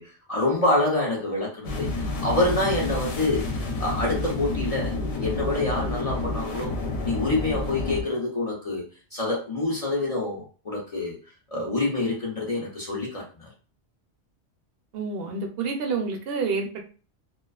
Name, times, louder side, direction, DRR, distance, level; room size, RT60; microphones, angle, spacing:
voice 1, 0.0-1.9 2.2-6.7 7.0-8.8 9.1-11.2 11.5-13.5, left 2 dB, 40° left, -4 dB, 0.5 m, -26 dB
sound 1, 1.6-8.0, left 2 dB, 70° left, 0.9 m, -29 dB
voice 2, 14.9-16.8, right 4 dB, 65° right, 3 dB, 0.7 m, -28 dB
2.4 x 2.3 x 2.3 m, 0.37 s
omnidirectional pair, 1.2 m